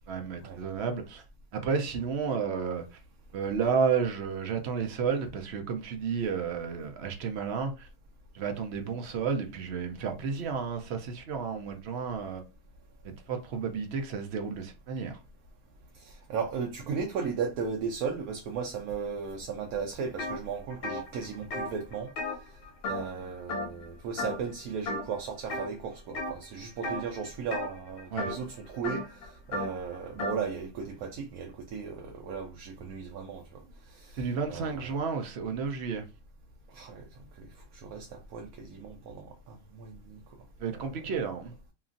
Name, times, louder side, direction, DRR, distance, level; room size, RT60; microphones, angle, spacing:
voice 1, 0.1-1.2 1.5-3.0 3.3-7.9 8.3-12.4 13.0-15.2 28.1-28.3 34.1-36.0 40.6-41.5, right 6 dB, 60° right, 0.7 m, -32 dB
voice 2, 16.0-22.1 22.8-34.2 34.5-34.9 36.7-37.1 37.4-37.5 37.7-40.2, right 6 dB, 80° right, 1.0 m, -36 dB
sound 1, 20.2-20.4 20.7-23.2 23.5-23.9 24.2-24.5 24.9-25.7 26.2-26.5 26.8-30.4, left 2 dB, 65° left, 1.0 m, -35 dB
2.9 x 2.4 x 2.5 m
omnidirectional pair, 1.5 m